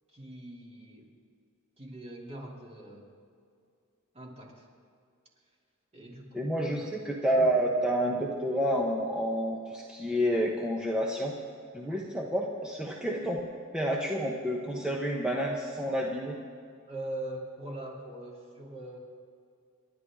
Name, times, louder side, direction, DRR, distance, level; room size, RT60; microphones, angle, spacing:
voice 1, 0.1-1.1 1.8-3.1 4.1-4.7 5.9-6.9 11.9-12.0 16.9-19.0, right 1 dB, 30° right, -2 dB, 2.9 m, -42 dB
voice 2, 6.3-6.8 7.1-11.3 11.7-13.4 13.7-16.3, equal, 5° right, -2 dB, 1.1 m, -29 dB
29.0 x 12.0 x 3.7 m, 2.4 s
head